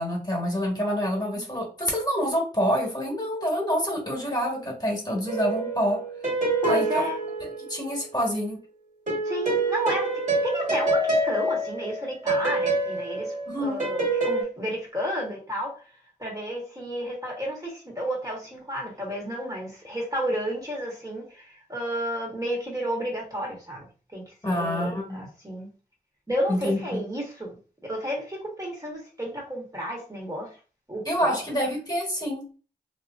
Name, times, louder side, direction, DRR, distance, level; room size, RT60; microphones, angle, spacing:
voice 1, 0.0-6.0 6.7-6.9 7.7-8.6 13.5-13.8 24.4-25.3 26.5-27.0 31.0-32.4, equal, 25° left, 1.3 m, -27 dB
sound 1, 5.3-8.2 9.1-14.4, right 2 dB, 45° right, 1.6 m, -27 dB
voice 2, 6.6-7.2 9.2-13.3 13.6-15.8 16.2-23.9 24.1-25.7 26.3-27.5 27.8-30.5 30.9-31.4, equal, 20° right, 1.2 m, -32 dB
2.8 x 2.5 x 2.5 m
cardioid pair, 50°, 18 cm